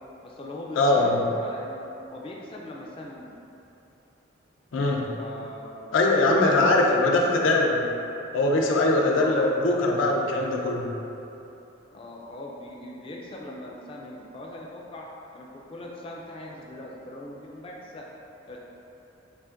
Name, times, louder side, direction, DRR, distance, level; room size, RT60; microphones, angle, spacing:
voice 1, 0.2-3.3 5.2-6.0 6.4-7.4 9.1-9.5 11.9-18.1 18.5-18.6, left 1 dB, 25° left, -2 dB, 0.3 m, -40 dB
voice 2, 0.7-1.2 4.7-5.1 5.9-7.9 8.3-10.9, left 2 dB, 85° left, 0 dB, 0.5 m, -21 dB
7.0 x 2.5 x 2.4 m, 2.9 s
head